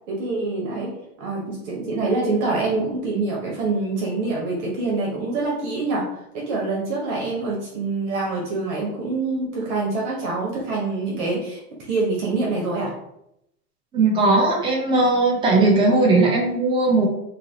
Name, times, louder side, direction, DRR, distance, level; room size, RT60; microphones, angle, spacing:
voice 1, 0.1-6.0 6.3-12.9, right 3 dB, 50° right, -3 dB, 1.0 m, -25 dB
voice 2, 13.9-17.1, right 2 dB, 10° right, -2 dB, 0.4 m, -18 dB
2.9 x 2.6 x 2.7 m, 0.78 s
hypercardioid pair, 125°, 47 cm